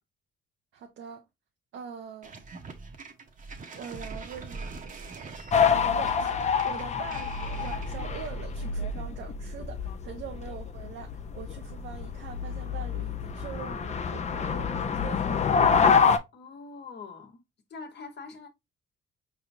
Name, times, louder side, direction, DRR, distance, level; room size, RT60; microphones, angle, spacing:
voice 1, 0.7-1.2 1.7-2.3 3.7-15.5, right 7 dB, 75° right, 0.8 m, -43 dB
sound 1, 2.2-8.5, right 4 dB, 40° right, 1.0 m, -43 dB
sound 2, 5.5-16.2, left 6 dB, 35° left, 0.6 m, -27 dB
voice 2, 16.3-17.4 17.7-18.5, left 4 dB, 55° left, 1.2 m, -43 dB
4.7 x 3.3 x 2.6 m
cardioid pair, 90°, 20 cm